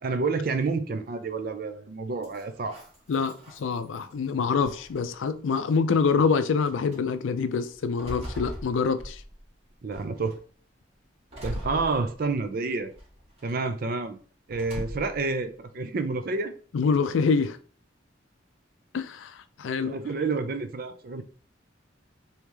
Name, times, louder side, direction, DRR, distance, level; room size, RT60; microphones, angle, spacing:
voice 1, 0.0-2.7 9.8-10.4 11.4-12.9 13.4-14.2 14.5-16.5 19.8-21.2, right 3 dB, 50° right, 0.4 m, -29 dB
sound 1, 2.2-4.1 4.6-5.3 6.1-6.2 6.6-7.0 7.5-9.5 9.9-10.4 11.3-12.5 12.9-13.5 14.5-15.3, equal, 30° right, 1.1 m, -40 dB
voice 2, 3.1-9.2 16.7-17.6 18.9-19.9, left 5 dB, 85° left, 0.4 m, -26 dB
3.2 x 2.8 x 3.3 m
head